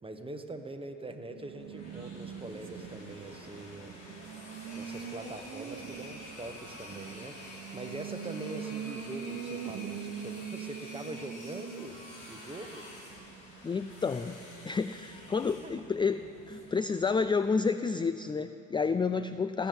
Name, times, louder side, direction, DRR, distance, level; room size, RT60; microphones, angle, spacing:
voice 1, 0.0-4.0 4.7-11.9 12.3-12.9 15.6-15.8, right 2 dB, 20° right, 6 dB, 1.2 m, -43 dB
Race car auto racing, 1.2-17.5, right 7 dB, 60° right, 1.0 m, -44 dB
sound 1, 1.5-17.5, left 1 dB, 85° left, 3.9 m, -49 dB
voice 2, 13.6-19.7, left 5 dB, 15° left, 12 dB, 0.3 m, -30 dB
18.5 x 7.1 x 9.4 m, 3.0 s
cardioid pair, 90°, 30 cm